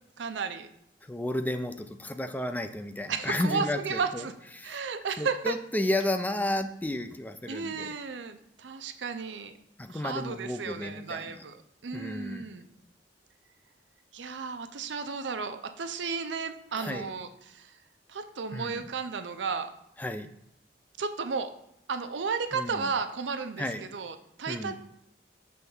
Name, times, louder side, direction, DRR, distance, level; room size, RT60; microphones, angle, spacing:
voice 1, 0.2-0.7 3.1-4.3 4.6-5.6 7.5-9.5 9.9-12.7 14.1-17.7 18.1-19.7 21.0-21.5 21.9-24.7, right 5 dB, 85° right, 9 dB, 0.5 m, -33 dB
voice 2, 1.1-4.3 4.6-4.8 5.2-8.0 9.8-11.4 11.9-12.5 16.8-17.1 18.5-18.8 20.0-20.3 22.5-22.9 23.6-23.8 24.5-24.7, left 1 dB, 10° left, 8 dB, 0.3 m, -32 dB
6.3 x 3.4 x 5.4 m, 0.77 s
head